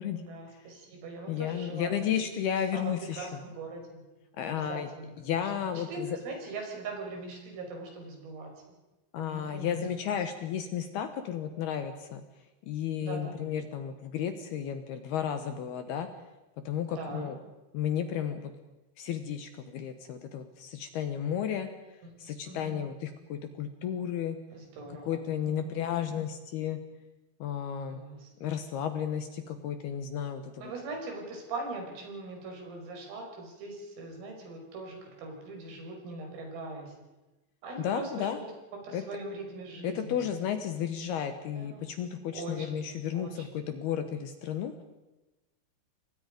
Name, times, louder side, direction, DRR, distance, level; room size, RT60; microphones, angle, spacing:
voice 1, 0.2-2.3 2.7-4.0 4.5-8.5 9.2-9.9 13.0-13.4 16.9-17.3 22.0-22.8 24.5-26.0 27.9-28.3 30.6-36.9 37.6-38.5 38.8-40.2 41.5-41.8 42.3-42.9 43.1-43.6, right 3 dB, 90° right, 1 dB, 8.1 m, -41 dB
voice 2, 1.3-3.3 4.4-4.9 5.2-6.1 9.1-12.2 12.7-16.1 16.6-17.4 17.7-18.5 19.0-21.7 22.2-24.4 25.1-26.8 27.4-28.0 28.4-30.7 37.8-38.4 38.9-39.0 39.8-44.8, left 9 dB, 70° left, 8 dB, 2.6 m, -33 dB
29.0 x 23.0 x 5.3 m, 1.1 s
omnidirectional pair, 5.8 m